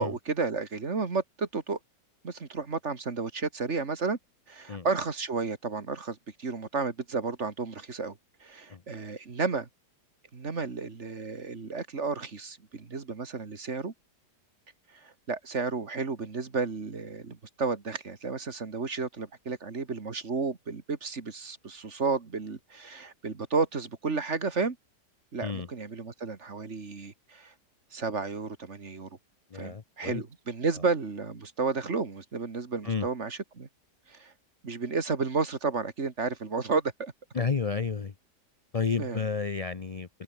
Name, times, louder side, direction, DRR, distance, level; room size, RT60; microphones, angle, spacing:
voice 1, 0.0-1.8 2.2-4.2 4.5-9.7 10.3-13.9 14.9-24.8 25.3-27.5 27.9-29.1 29.5-33.7 34.1-34.3 34.6-37.1 39.0-39.2, right 4 dB, 40° right, 2.2 m, -32 dB
voice 2, 29.5-30.2 32.8-33.1 37.3-38.1 38.7-40.2, left 5 dB, 45° left, 0.4 m, -31 dB
omnidirectional pair, 1.8 m